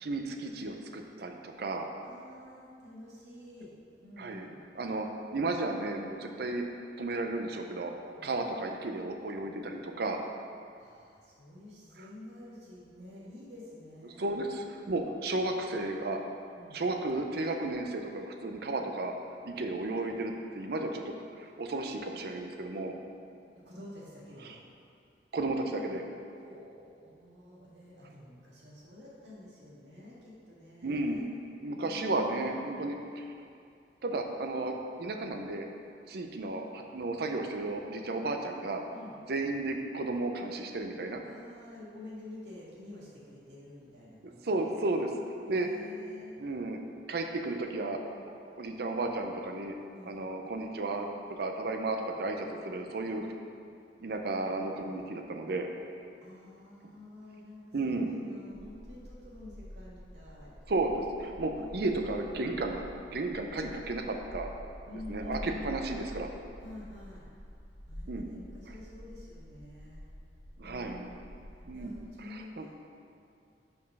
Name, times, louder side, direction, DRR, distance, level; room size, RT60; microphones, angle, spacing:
voice 1, 0.0-1.9 4.2-4.5 4.7-6.6 7.0-7.9 8.2-10.2 14.0-16.2 16.7-19.1 19.4-23.0 24.5-24.6 25.3-26.0 30.8-31.2 31.6-33.3 34.0-35.7 36.1-38.8 39.3-41.2 44.4-45.1 45.5-45.7 46.4-46.8 47.1-49.7 50.0-53.3 54.0-55.7 57.7-58.1 60.7-62.8 63.1-64.5 65.1-66.3 68.1-68.3 70.6-71.0 71.7-71.9 72.2-72.7, right 2 dB, 60° right, 3 dB, 0.5 m, -33 dB
voice 2, 2.0-3.7 4.0-4.6 8.1-8.3 10.8-14.3 16.5-16.8 23.5-24.6 26.3-31.3 31.7-33.0 38.9-39.1 41.2-44.9 45.5-46.4 49.9-50.1 56.2-60.5 61.5-62.2 64.9-65.8 66.6-67.3 67.9-70.0 70.6-71.4 71.7-72.7, left 1 dB, 80° right, -6 dB, 1.6 m, -49 dB
sound 1, 58.5-72.1, equal, 45° left, 1.1 m, -48 dB
5.3 x 4.6 x 5.3 m, 2.4 s
head